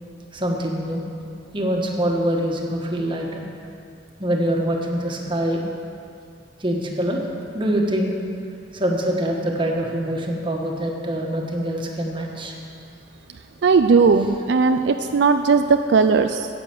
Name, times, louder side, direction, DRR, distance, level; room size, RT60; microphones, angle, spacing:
voice 1, 0.3-1.0 1.5-3.4 4.2-5.6 6.6-7.2 7.5-8.1 8.7-12.5, right 1 dB, 30° right, 0 dB, 1.5 m, -24 dB
voice 2, 13.6-16.5, right 4 dB, 70° right, 7 dB, 0.4 m, -17 dB
10.0 x 8.5 x 7.8 m, 2.5 s
head